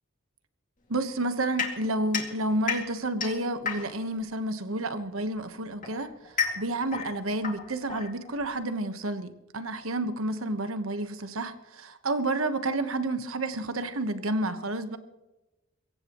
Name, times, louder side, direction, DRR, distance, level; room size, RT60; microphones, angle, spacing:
voice 1, 0.9-6.1 6.6-15.0, right 2 dB, 75° right, 1.3 m, -30 dB
sound 1, 1.6-4.2 5.2-8.6, left 6 dB, 40° left, 2.4 m, -33 dB
22.5 x 17.5 x 3.1 m
head